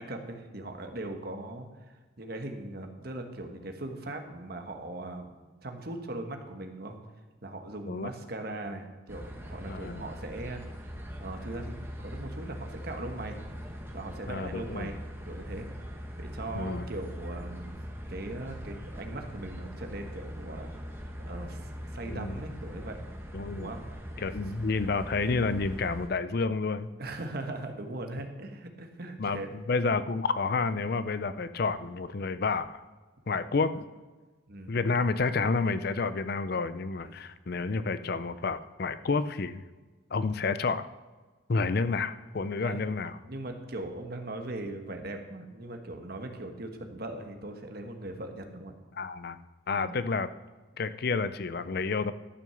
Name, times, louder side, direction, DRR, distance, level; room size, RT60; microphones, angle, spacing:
voice 1, 0.0-7.0 7.4-10.9 11.2-13.4 13.9-15.0 15.3-15.7 16.2-17.8 18.1-20.7 21.2-23.0 23.5-23.8 27.0-29.5 33.4-33.5 34.5-34.8 37.0-37.2 42.6-42.9 43.3-48.7 49.8-49.9, right 2 dB, 50° right, 4 dB, 1.3 m, -39 dB
sound 1, 9.1-26.1, equal, 10° right, 1.0 m, -41 dB
voice 2, 9.7-10.1 14.3-14.9 16.5-16.9 22.1-22.4 23.3-23.7 24.2-26.9 29.2-32.8 33.3-33.8 34.7-39.6 40.1-40.9 41.5-43.2 49.0-49.4 49.7-50.3 50.8-52.1, left 4 dB, 50° left, 13 dB, 0.5 m, -30 dB
12.5 x 6.2 x 6.9 m, 1.3 s
head